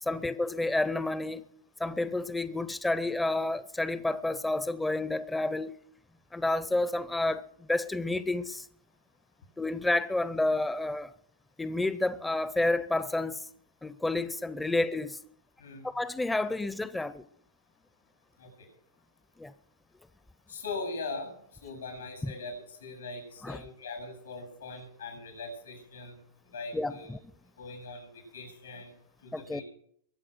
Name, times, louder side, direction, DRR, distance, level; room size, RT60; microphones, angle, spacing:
voice 1, 0.0-1.4 1.8-5.7 6.3-7.4 7.7-8.7 9.6-11.1 11.6-13.5 13.8-15.2 15.8-17.2 19.4-19.5 22.2-22.3 23.4-23.6 26.7-27.2 29.3-29.6, left 2 dB, 5° left, 0.6 m, -30 dB
voice 2, 18.4-18.7 20.5-27.1 27.6-28.9 29.2-29.6, left 3 dB, 85° left, 7.8 m, -41 dB
22.5 x 7.5 x 6.2 m
hypercardioid pair, 115°, 0 cm